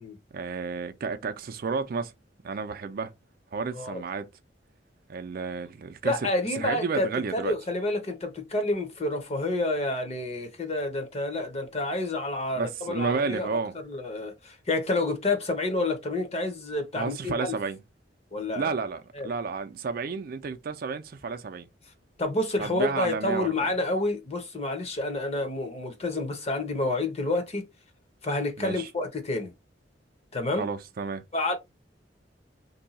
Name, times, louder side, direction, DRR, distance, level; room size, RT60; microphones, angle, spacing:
voice 1, 0.3-2.1 2.4-3.1 3.5-4.3 5.1-6.1 6.6-7.5 12.6-13.7 17.0-17.8 18.6-21.7 22.6-23.5 28.6-28.9 30.6-31.2, right 4 dB, 55° right, 0.4 m, -31 dB
voice 2, 6.0-13.5 13.8-17.5 18.3-18.7 19.1-19.3 22.2-27.6 28.2-29.5 30.3-30.7 31.3-31.5, left 2 dB, 35° left, 0.8 m, -29 dB
2.7 x 2.3 x 4.0 m
head